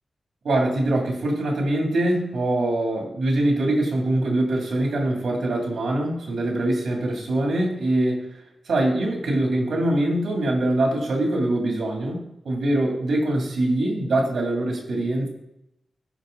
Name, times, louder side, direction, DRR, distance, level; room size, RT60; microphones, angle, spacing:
voice 1, 0.4-8.3 8.7-12.2 12.4-15.3, right 1 dB, 90° right, 1 dB, 2.4 m, -23 dB
14.0 x 4.8 x 3.8 m, 0.82 s
wide cardioid pair, 105°, 0 cm